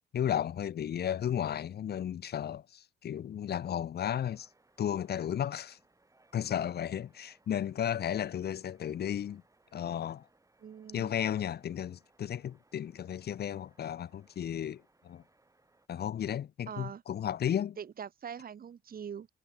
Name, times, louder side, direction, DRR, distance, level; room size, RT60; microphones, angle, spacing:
voice 1, 0.1-4.5 4.8-5.8 6.3-9.4 9.7-10.3 10.9-15.2 15.9-17.8, left 9 dB, 55° left, 1.0 m, -34 dB
sound 1, 4.0-15.9, right 2 dB, 15° right, 5.4 m, -68 dB
voice 2, 10.6-11.1 16.7-17.0 17.8-19.3, right 8 dB, 50° right, 1.7 m, -43 dB
cardioid pair, 90°, 20 cm